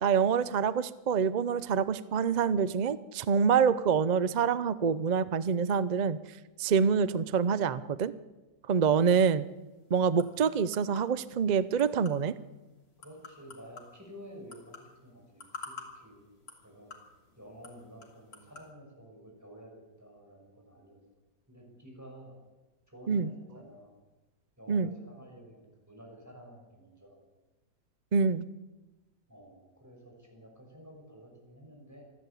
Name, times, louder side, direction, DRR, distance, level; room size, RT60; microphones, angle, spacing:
voice 1, 0.0-6.2 6.6-8.1 8.7-9.4 9.9-12.3 23.1-23.3 24.7-24.9 28.1-28.5, right 6 dB, 70° right, 15 dB, 0.4 m, -26 dB
sound 1, 9.3-18.7, left 4 dB, 55° left, 3.5 m, -51 dB
voice 2, 13.0-16.2 16.6-16.9 17.4-21.0 21.5-22.4 22.9-23.9 24.6-27.2 29.3-32.0, equal, 10° right, 0 dB, 6.1 m, -51 dB
26.5 x 12.0 x 8.4 m, 1.1 s
omnidirectional pair, 1.9 m